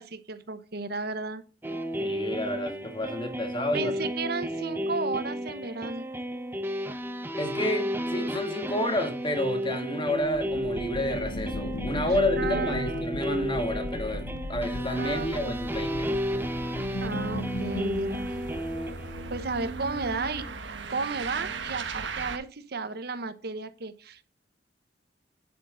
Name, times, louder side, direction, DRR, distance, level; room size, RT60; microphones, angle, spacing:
voice 1, 0.0-1.4 3.7-6.1 12.1-13.1 15.0-15.6 16.7-18.3 19.3-20.4 20.9-24.2, right 4 dB, 60° right, 1.0 m, -34 dB
sound 1, 1.6-19.4, equal, 10° right, 0.9 m, -33 dB
voice 2, 2.0-3.9 7.4-16.1, equal, 25° left, 1.7 m, -30 dB
sound 2, 10.2-20.8, left 1 dB, 80° left, 1.2 m, -37 dB
sound 3, 14.6-22.4, right 4 dB, 85° right, 1.3 m, -40 dB
9.2 x 7.5 x 3.9 m
head